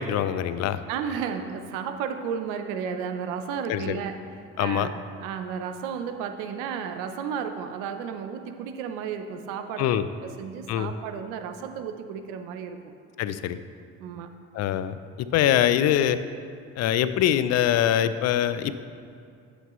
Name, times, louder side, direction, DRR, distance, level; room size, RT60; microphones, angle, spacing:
voice 1, 0.0-0.8 3.7-4.0 4.6-4.9 9.8-10.0 10.7-10.9 13.2-13.6 14.5-16.2 16.8-18.7, left 11 dB, 55° left, 13 dB, 0.5 m, -23 dB
voice 2, 0.9-12.9 14.0-14.3, right 7 dB, 80° right, 8 dB, 0.7 m, -33 dB
9.0 x 8.1 x 3.1 m, 2.4 s
supercardioid pair, 80°, 31 cm